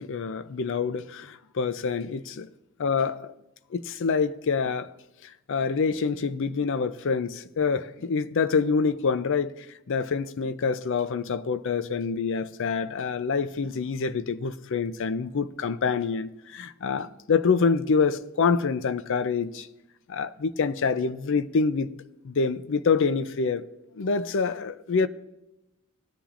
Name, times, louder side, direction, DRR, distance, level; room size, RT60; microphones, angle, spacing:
voice 1, 0.0-2.5 2.8-3.3 3.7-4.9 5.2-19.7 20.1-21.9 22.2-23.6 24.0-25.1, left 5 dB, 60° left, 0.5 m, -26 dB
18.0 x 10.0 x 2.5 m
head